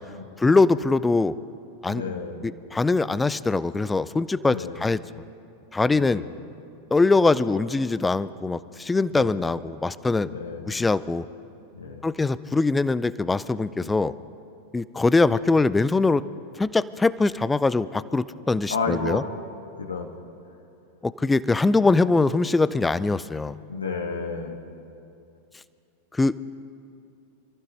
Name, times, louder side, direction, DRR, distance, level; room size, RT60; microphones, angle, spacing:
voice 1, 0.4-1.3 1.8-5.0 5.7-6.2 6.9-10.3 10.7-11.2 12.0-14.1 14.7-16.2 16.6-19.2 21.0-23.6 26.1-26.4, left 3 dB, 10° left, 17 dB, 0.4 m, -22 dB
voice 2, 1.9-2.4 4.5-4.8 5.9-6.4 9.1-9.4 10.2-10.7 11.7-12.0 13.7-13.9 18.7-19.2 19.8-20.1 23.7-24.5, left 4 dB, 75° left, 2 dB, 1.4 m, -31 dB
27.0 x 14.5 x 3.3 m, 2.6 s
figure-of-eight pair, 90°, 0 cm